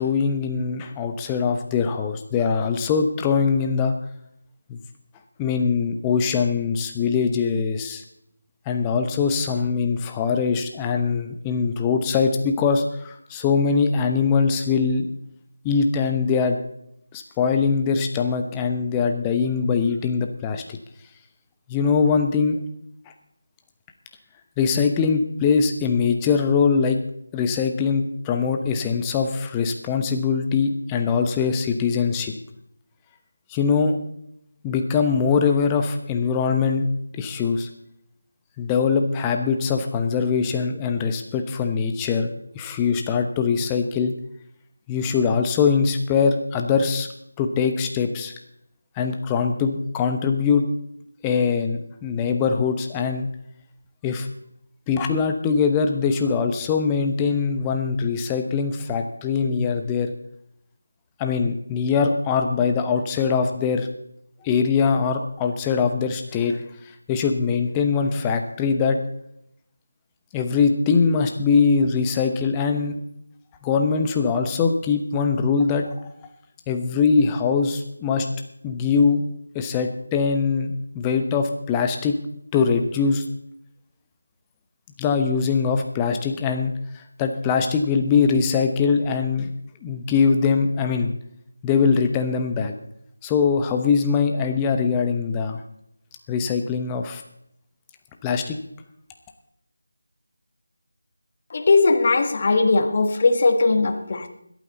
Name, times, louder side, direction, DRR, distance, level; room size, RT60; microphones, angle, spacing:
voice 1, 0.0-3.9 4.7-4.8 5.4-8.0 8.7-15.1 15.6-16.6 17.1-20.8 21.7-22.6 24.6-27.0 27.3-32.3 33.5-34.0 34.6-36.9 37.2-37.7 38.6-44.1 44.9-47.1 47.4-48.3 49.0-50.6 51.2-53.3 54.0-54.3 54.9-60.1 61.2-63.9 64.4-66.6 67.1-69.0 70.3-73.0 73.6-76.1 76.7-78.3 78.6-79.2 79.5-82.2 82.5-83.2 85.0-89.5 89.8-91.1 91.6-92.7 93.2-95.6 96.3-97.2 98.2-98.6, left 5 dB, 15° left, 5 dB, 0.9 m, -22 dB
voice 2, 101.5-104.3, left 3 dB, 40° left, 7 dB, 1.3 m, -19 dB
21.0 x 9.1 x 4.1 m, 0.73 s
figure-of-eight pair, 165°, 0 cm